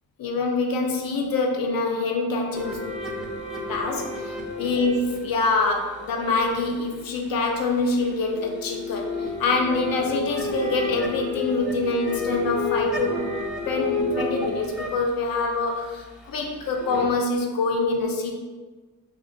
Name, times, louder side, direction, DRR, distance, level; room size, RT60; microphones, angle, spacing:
voice 1, 0.2-2.9 3.7-13.2 13.6-18.4, left 3 dB, 60° left, 1 dB, 0.6 m, -25 dB
sound 1, 2.5-7.0 7.9-17.0, left 2 dB, ahead, 0.4 m, -32 dB
2.4 x 2.1 x 3.7 m, 1.3 s
cardioid pair, 75°, 39 cm